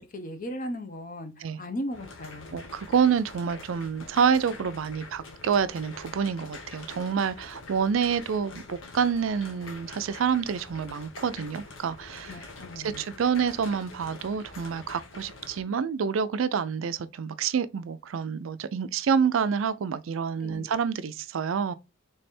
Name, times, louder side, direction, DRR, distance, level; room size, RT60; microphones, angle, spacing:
voice 1, 0.0-1.3 1.6-2.6 12.3-13.0 20.4-20.7, equal, 45° left, 0.8 m, -37 dB
sound 1, 1.9-15.6, left 3 dB, 80° left, 1.1 m, -45 dB
voice 2, 2.5-12.4 12.8-21.7, right 6 dB, 80° right, 0.4 m, -27 dB
3.4 x 3.3 x 4.2 m
head